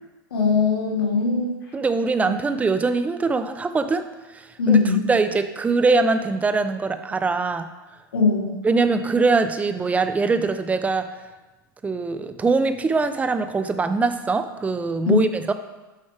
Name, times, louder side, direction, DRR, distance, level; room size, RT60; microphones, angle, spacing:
voice 1, 0.3-1.6 4.6-5.1 8.1-8.5 15.1-15.2, left 5 dB, 85° left, -2 dB, 1.7 m, -20 dB
voice 2, 1.7-4.1 4.3-4.8 5.1-7.7 8.6-11.1 11.8-15.5, right 4 dB, 10° right, 10 dB, 0.4 m, -22 dB
8.7 x 3.2 x 4.7 m, 1.1 s
hypercardioid pair, 105°, 12 cm